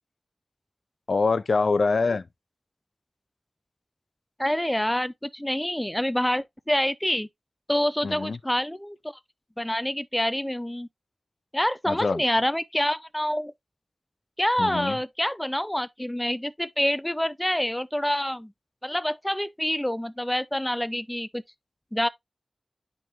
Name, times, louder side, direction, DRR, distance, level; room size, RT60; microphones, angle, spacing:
voice 1, 1.1-2.2 8.0-8.4 11.9-12.2 14.6-15.0, left 4 dB, 80° left, 0.4 m, -24 dB
voice 2, 4.4-7.3 7.7-9.2 9.6-10.9 11.5-13.5 14.4-18.5 18.8-21.4 21.9-22.1, equal, 10° left, 0.5 m, -27 dB
10.5 x 3.6 x 2.8 m
cardioid pair, 45°, 0 cm